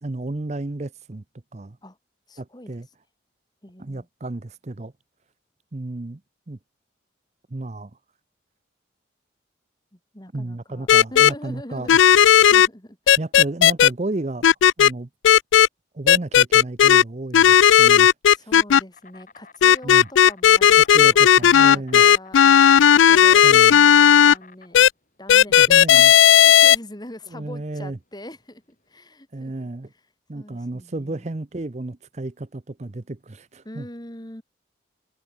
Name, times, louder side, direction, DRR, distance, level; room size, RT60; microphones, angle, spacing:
voice 1, 0.0-1.2 1.5-1.8 2.4-2.9 3.8-4.9 5.7-6.2 6.5-6.6 7.5-7.9 10.3-12.0 13.2-14.5 14.8-15.1 15.9-18.5 19.8-20.1 20.8-22.0 23.4-23.8 25.6-26.1 27.3-28.0 29.3-29.9 30.3-33.9, right 2 dB, 35° right, 0.6 m, -32 dB
voice 2, 2.3-2.7 3.6-4.1 9.9-13.4 18.3-24.9 25.2-29.7 30.3-31.3 33.6-34.4, left 1 dB, 20° left, 2.4 m, -42 dB
sound 1, 10.9-11.3 11.9-12.7 13.1-13.9 14.4-14.9 15.2-15.7 16.1-17.0 17.3-18.8 19.6-24.3 24.7-24.9 25.3-26.8, left 9 dB, 80° left, 0.4 m, -13 dB
Insect, 18.9-28.9, left 4 dB, 40° left, 7.5 m, -51 dB
head